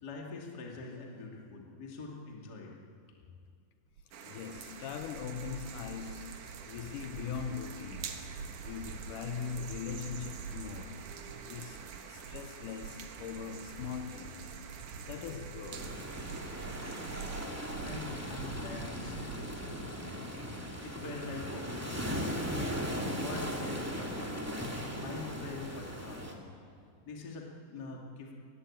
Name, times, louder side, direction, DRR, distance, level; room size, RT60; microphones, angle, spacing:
voice 1, 0.0-2.8 17.8-20.2 20.8-22.7 23.2-24.4 24.9-26.5 27.0-28.3, left 3 dB, 30° left, 2.4 m, -44 dB
sound 1, 4.0-20.0, right 5 dB, 80° right, 3.1 m, -46 dB
sound 2, 4.1-17.5, right 6 dB, 65° right, 2.8 m, -48 dB
voice 2, 4.3-8.4 8.7-11.1 11.5-14.6 15.0-16.0, left 7 dB, 75° left, 2.0 m, -41 dB
sound 3, 15.7-26.3, equal, 5° right, 1.4 m, -38 dB
22.5 x 19.5 x 8.7 m
omnidirectional pair, 4.4 m